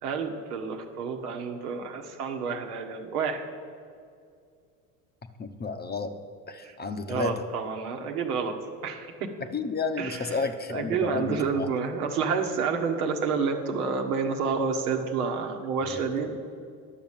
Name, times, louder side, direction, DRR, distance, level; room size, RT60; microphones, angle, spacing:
voice 1, 0.0-3.4 6.6-6.7 7.1-8.5 8.8-9.3 10.0-10.4 10.7-16.3, right 5 dB, 85° right, 4 dB, 1.3 m, -29 dB
voice 2, 5.4-6.2 6.5-7.4 9.4-11.7 15.8-16.0, left 4 dB, 20° left, 8 dB, 0.8 m, -31 dB
11.0 x 6.8 x 7.3 m, 2.3 s
hypercardioid pair, 80°, 44 cm